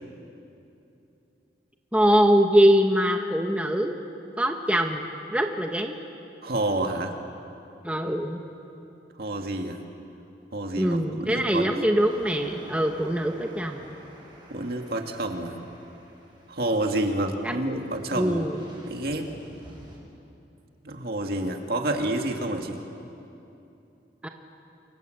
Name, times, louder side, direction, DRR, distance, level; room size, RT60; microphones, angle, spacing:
voice 1, 1.9-4.0 4.4-6.0 7.8-8.4 10.8-13.8 17.4-17.5 18.1-18.6 24.2-24.3, equal, 5° right, 3 dB, 1.2 m, -23 dB
voice 2, 6.4-7.1 9.2-9.8 10.5-11.7 14.5-15.5 16.5-18.4 18.8-19.3 20.8-22.8, right 1 dB, 60° right, 3 dB, 2.3 m, -28 dB
sound 1, 11.9-20.0, right 1 dB, 25° right, 7.1 m, -49 dB
28.5 x 24.0 x 7.9 m, 2.8 s
head